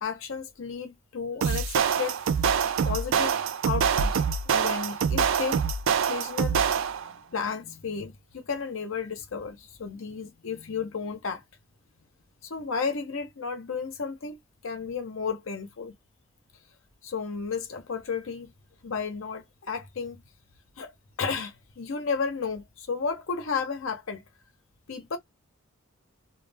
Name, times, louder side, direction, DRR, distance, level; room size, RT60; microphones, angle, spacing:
voice 1, 0.0-3.4 3.7-5.6 6.1-6.6 7.0-11.4 12.4-14.4 14.6-15.9 17.0-18.5 18.8-20.2 20.8-20.9 21.2-24.2 24.9-25.2, left 5 dB, 70° left, 0.6 m, -33 dB
sound 1, 1.4-7.1, right 6 dB, 65° right, 0.3 m, -25 dB
2.3 x 2.1 x 3.2 m
head